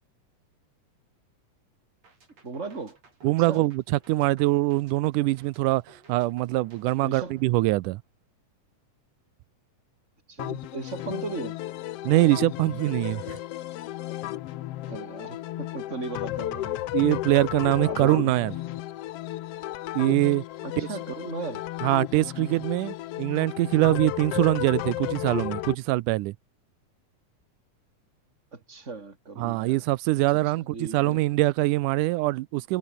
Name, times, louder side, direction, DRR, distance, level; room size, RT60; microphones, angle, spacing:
sound 1, 2.0-8.2, right 4 dB, 55° right, 6.9 m, -57 dB
voice 1, 2.4-3.0 3.5-3.7 7.0-7.3 10.3-11.6 14.9-16.8 17.8-18.3 20.6-21.6 28.5-29.9 30.3-31.2, right 4 dB, 20° right, 3.6 m, -37 dB
voice 2, 3.2-5.8 6.1-8.0 12.0-13.4 16.9-18.5 20.0-20.4 20.8-20.9 21.8-26.3 29.4-32.8, right 19 dB, 90° right, 2.2 m, -23 dB
sound 2, 10.4-25.8, left 15 dB, 75° left, 1.4 m, -33 dB
omnidirectional pair, 3.5 m